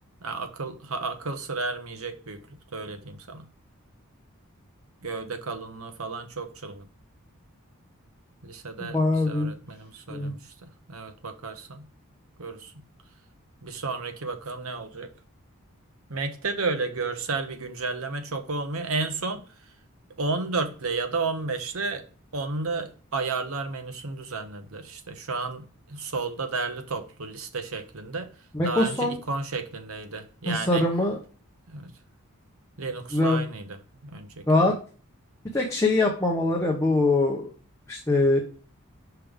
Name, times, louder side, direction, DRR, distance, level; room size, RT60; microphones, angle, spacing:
voice 1, 0.2-2.4 2.7-3.5 5.0-6.9 8.4-9.0 9.2-11.9 12.4-12.8 13.6-15.1 16.1-19.4 20.2-22.0 22.3-28.3 28.6-30.8 31.7-31.9 32.8-33.8 34.0-34.7, right 3 dB, 75° right, 1.0 m, -32 dB
voice 2, 8.8-9.5 10.1-10.3 28.5-29.2 30.5-31.2 33.1-33.4 34.5-34.7 35.5-37.5 37.9-38.4, left 2 dB, 15° left, 0.9 m, -23 dB
5.8 x 5.3 x 3.5 m
head